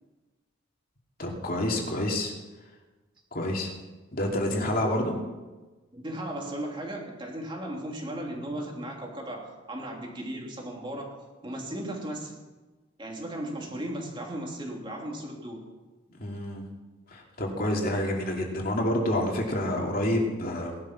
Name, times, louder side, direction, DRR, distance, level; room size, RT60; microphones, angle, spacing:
voice 1, 1.2-2.3 3.3-3.7 4.1-5.1 16.2-16.6 17.1-20.8, left 1 dB, 45° left, 0 dB, 2.8 m, -28 dB
voice 2, 5.9-12.4 13.0-15.6, right 1 dB, 25° right, -1 dB, 2.9 m, -36 dB
18.5 x 12.0 x 6.0 m, 1.2 s
head